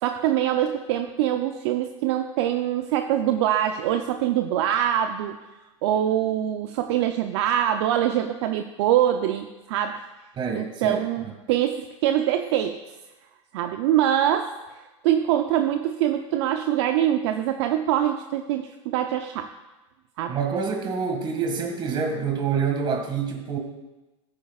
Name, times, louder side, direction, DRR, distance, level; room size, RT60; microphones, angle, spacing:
voice 1, 0.0-5.4 5.8-10.0 10.5-12.8 13.5-14.5 15.0-19.5 20.2-20.4, right 11 dB, 60° right, 7 dB, 0.6 m, -24 dB
voice 2, 10.4-11.3 20.3-23.6, right 6 dB, 30° right, 3 dB, 2.0 m, -27 dB
14.5 x 9.7 x 2.4 m, 1.1 s
hypercardioid pair, 115°, 16 cm